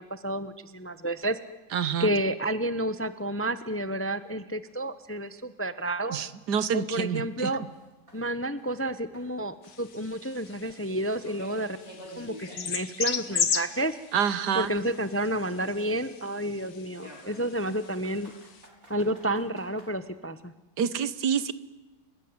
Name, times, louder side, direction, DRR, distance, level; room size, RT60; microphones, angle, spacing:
voice 1, 0.0-1.4 2.0-6.3 6.7-7.6 8.1-11.8 12.2-14.0 14.5-18.3 18.9-20.5, right 1 dB, 10° left, 12 dB, 0.7 m, -30 dB
voice 2, 1.7-2.1 6.1-7.5 14.1-14.7 20.8-21.5, right 7 dB, 80° right, 15 dB, 1.7 m, -27 dB
sound 1, 3.0-3.1 3.5-3.6 4.1-4.2 4.7-4.8 5.2-5.3 5.8-5.9 6.4-8.9 9.1-13.8 14.1-16.1 17.0-19.9, equal, 55° right, 6.4 m, -52 dB
sound 2, 9.6-18.7, left 7 dB, 65° left, 1.8 m, -36 dB
29.5 x 19.5 x 9.6 m, 1.1 s
omnidirectional pair, 1.8 m